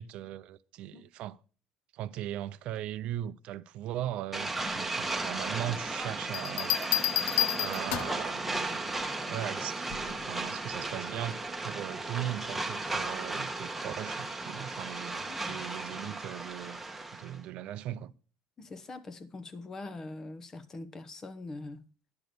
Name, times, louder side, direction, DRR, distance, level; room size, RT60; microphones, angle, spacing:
voice 1, 0.0-1.4 1.9-6.8 7.5-9.0 9.3-16.8 17.1-18.1, right 12 dB, 60° right, 0.5 m, -39 dB
sound 1, 4.3-17.4, right 2 dB, 5° right, 1.1 m, -35 dB
sound 2, 6.3-8.3 9.9-10.2, left 12 dB, 75° left, 0.6 m, -30 dB
voice 2, 15.3-15.7 15.9-16.1 18.6-21.9, left 2 dB, 25° left, 0.8 m, -43 dB
10.5 x 6.1 x 6.7 m
cardioid pair, 135°, 2 cm